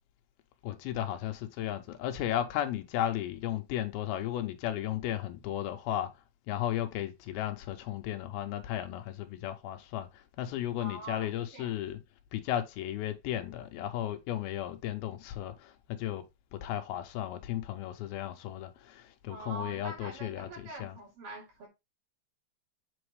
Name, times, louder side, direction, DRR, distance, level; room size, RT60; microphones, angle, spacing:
voice 1, 0.6-6.1 6.5-10.1 10.4-12.0 12.3-16.2 16.5-21.0, left 12 dB, 80° left, 2.6 m, -34 dB
voice 2, 10.8-11.8 19.3-21.7, right 2 dB, 60° right, 4.4 m, -44 dB
7.9 x 4.1 x 3.1 m
omnidirectional pair, 4.5 m